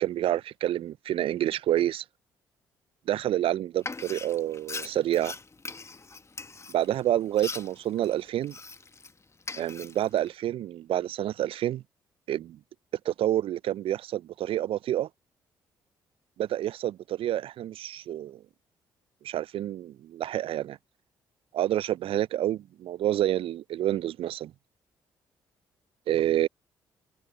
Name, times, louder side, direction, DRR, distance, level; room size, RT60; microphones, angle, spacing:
voice 1, 0.0-2.0 3.1-5.3 6.7-8.6 9.6-11.8 12.3-12.6 13.0-15.1 16.4-18.4 19.2-20.8 21.5-24.5 26.1-26.5, right 12 dB, 60° right, 0.7 m, -28 dB
Frying (food), 3.8-9.1 9.4-10.3, left 3 dB, 25° left, 1.6 m, -41 dB
hypercardioid pair, 45°, 11 cm